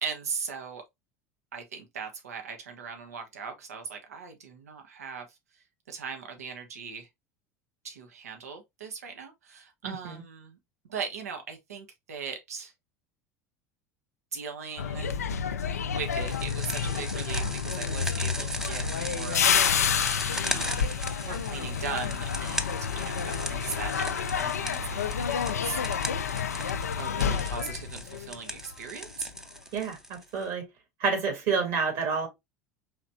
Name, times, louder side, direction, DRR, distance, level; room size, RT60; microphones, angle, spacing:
voice 1, 0.0-0.8 1.5-5.4 5.9-7.1 7.8-10.6 10.9-12.7 14.3-15.2 15.8-19.5 20.5-20.9 21.2-25.8 27.0-29.3, right 6 dB, 80° right, 1.0 m, -39 dB
voice 2, 9.8-10.2 29.7-30.7 31.0-32.3, right 5 dB, 55° right, 2.4 m, -29 dB
sound 1, 14.8-28.8 29.1-29.4, left 7 dB, 85° left, 0.4 m, -29 dB
sound 2, 16.1-30.4, equal, 5° right, 0.6 m, -39 dB
4.9 x 3.1 x 2.5 m
hypercardioid pair, 75°, 8 cm